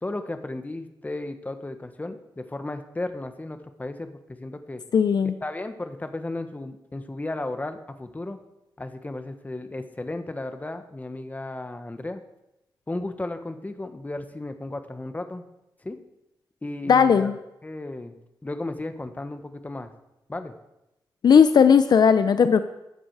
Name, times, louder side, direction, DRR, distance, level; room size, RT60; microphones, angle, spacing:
voice 1, 0.0-4.8 5.4-8.4 8.8-12.2 12.9-15.4 15.8-16.0 16.6-17.3 17.6-18.2 18.4-19.9 20.3-20.5, left 2 dB, 20° left, 8 dB, 1.3 m, -34 dB
voice 2, 4.9-5.3 16.9-17.3 21.2-22.6, left 6 dB, 65° left, 11 dB, 0.6 m, -17 dB
14.0 x 9.8 x 4.8 m, 0.91 s
cardioid pair, 70°, 8 cm